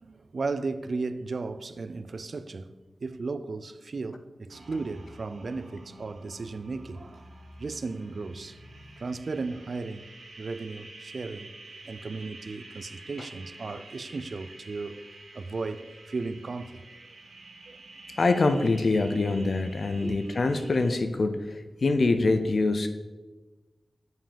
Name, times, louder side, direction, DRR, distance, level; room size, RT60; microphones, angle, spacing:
voice 1, 0.0-7.2 7.6-8.6 9.0-10.1 10.4-11.5 11.8-16.8 17.7-17.8 20.0-20.2, right 3 dB, 55° right, 0.4 m, -35 dB
sound 1, 4.5-21.0, right 2 dB, 85° right, 1.4 m, -49 dB
voice 2, 18.2-22.9, left 3 dB, 55° left, 0.5 m, -25 dB
7.3 x 5.6 x 5.1 m
wide cardioid pair, 120°, 0 cm